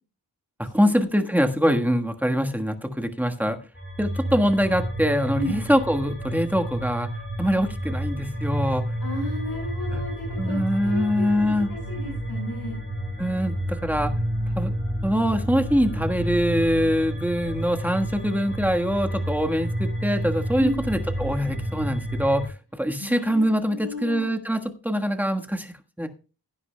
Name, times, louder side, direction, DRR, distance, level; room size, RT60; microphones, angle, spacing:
voice 1, 0.6-3.6 4.0-7.1 7.4-8.9 9.9-10.0 10.4-11.7 13.2-14.1 14.6-14.7 15.0-26.1, equal, 5° right, 5 dB, 1.4 m, -24 dB
sound 1, 3.8-22.5, equal, 30° left, 5.3 m, -30 dB
voice 2, 9.0-12.8 20.5-20.7 23.0-24.3, equal, 75° left, -1 dB, 4.7 m, -33 dB
16.5 x 9.7 x 2.2 m, 0.34 s
wide cardioid pair, 70°, 41 cm